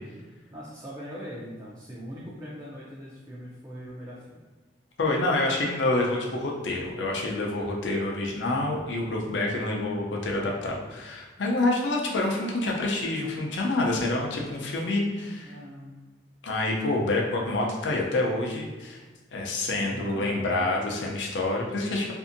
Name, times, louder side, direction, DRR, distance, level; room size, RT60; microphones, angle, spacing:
voice 1, 0.5-4.4 15.4-16.0 19.7-20.5, equal, 20° right, -7 dB, 0.4 m, -41 dB
voice 2, 5.0-15.5 16.4-19.0 19.3-22.1, left 2 dB, 80° left, -1 dB, 0.5 m, -27 dB
2.6 x 2.5 x 2.5 m, 1.3 s
head